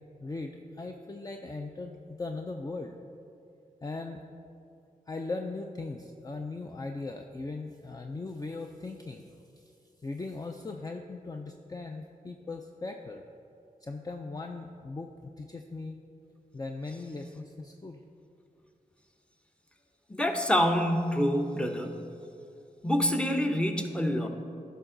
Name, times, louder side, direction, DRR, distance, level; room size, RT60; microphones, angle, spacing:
voice 1, 0.2-3.0 3.8-4.2 5.1-9.3 9.6-9.7 10.0-13.2 13.8-16.0 16.5-18.0, left 3 dB, 25° left, 4 dB, 0.5 m, -39 dB
voice 2, 20.1-22.1 22.8-24.3, equal, 5° left, 5 dB, 0.9 m, -27 dB
10.5 x 5.6 x 3.9 m, 2.6 s
cardioid pair, 45°, 15 cm